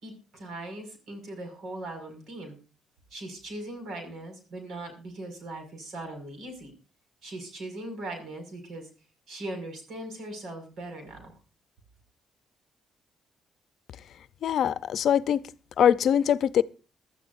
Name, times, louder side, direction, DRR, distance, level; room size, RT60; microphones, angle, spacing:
voice 1, 0.0-2.6 3.1-6.7 7.2-8.9 9.3-11.3, right 1 dB, 70° right, 5.7 m, -39 dB
voice 2, 14.4-15.4 15.8-16.6, left 9 dB, 70° left, 0.6 m, -22 dB
22.5 x 12.5 x 2.6 m
cardioid pair, 90°, 0 cm